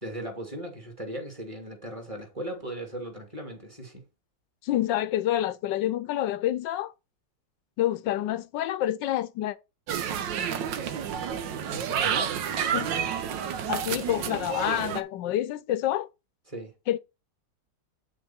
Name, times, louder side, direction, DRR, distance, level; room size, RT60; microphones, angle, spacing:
voice 1, 0.0-4.0 11.7-12.3 13.9-14.0 16.5-16.7, right 1 dB, 15° right, 2.6 m, -38 dB
voice 2, 4.6-6.9 7.8-9.6 12.7-12.9 13.7-16.1 16.9-17.0, left 13 dB, 80° left, 1.3 m, -28 dB
sound 1, 9.9-15.0, right 8 dB, 80° right, 1.6 m, -30 dB
8.7 x 6.5 x 4.3 m
omnidirectional pair, 2.0 m